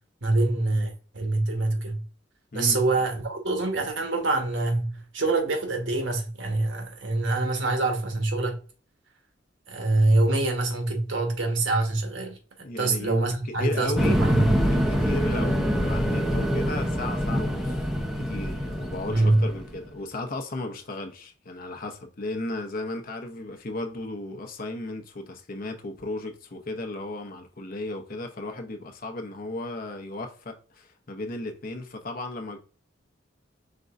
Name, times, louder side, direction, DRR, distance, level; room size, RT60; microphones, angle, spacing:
voice 1, 0.2-2.0 2.5-8.6 9.7-12.4 12.8-14.5 19.1-19.4, right 2 dB, 80° right, 1.2 m, -25 dB
voice 2, 12.6-14.2 14.9-32.6, left 2 dB, 50° left, 0.9 m, -35 dB
sound 1, 14.0-19.8, equal, ahead, 0.7 m, -25 dB
5.2 x 3.8 x 2.5 m
head